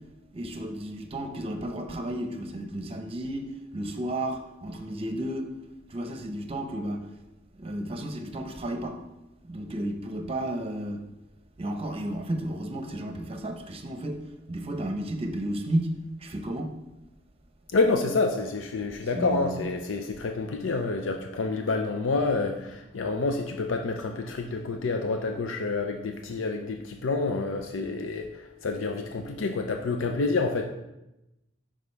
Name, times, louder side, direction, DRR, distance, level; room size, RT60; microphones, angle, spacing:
voice 1, 0.3-5.5 5.9-7.0 7.6-9.0 9.4-11.0 11.6-14.2 14.5-15.9 16.2-16.7 19.1-19.6, right 1 dB, 30° right, 0.8 m, -32 dB
voice 2, 17.7-30.7, left 3 dB, 90° left, 0.6 m, -28 dB
10.5 x 5.1 x 3.4 m
head